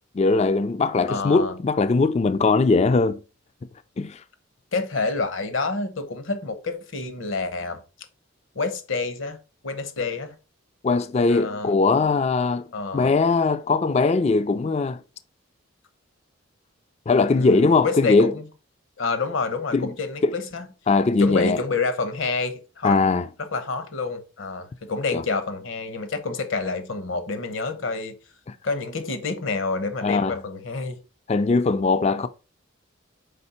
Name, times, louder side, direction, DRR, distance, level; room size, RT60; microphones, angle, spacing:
voice 1, 0.1-3.2 4.0-4.2 10.8-12.7 12.9-15.0 17.1-18.3 19.7-19.9 20.2-20.3 20.9-21.6 22.8-23.3 25.1-25.2 28.5-28.6 30.0-30.4 31.3-32.3, left 3 dB, 30° left, 0.3 m, -20 dB
voice 2, 1.1-1.5 4.7-7.8 8.5-9.4 9.6-10.3 11.3-11.7 12.7-13.1 17.3-18.4 19.0-20.7 21.2-23.0 23.4-28.1 28.6-31.0, left 4 dB, 65° left, 1.0 m, -28 dB
5.3 x 4.2 x 4.2 m
head